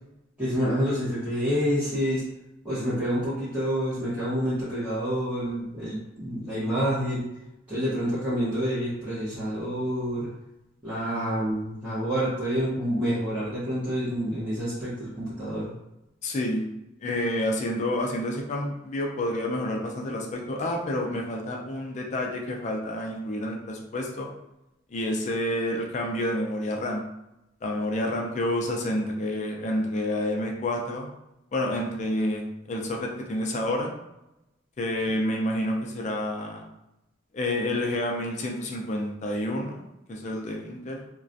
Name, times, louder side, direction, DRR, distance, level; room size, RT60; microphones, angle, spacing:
voice 1, 0.4-2.2 2.6-7.2 7.7-10.3 10.8-15.7, equal, 5° right, -15 dB, 0.8 m, -28 dB
voice 2, 16.2-16.6 17.0-24.3 24.9-27.0 27.6-31.1 31.5-33.9 34.8-36.6 37.3-41.0, left 1 dB, 35° left, 1 dB, 0.3 m, -29 dB
2.3 x 2.1 x 2.5 m, 0.89 s
head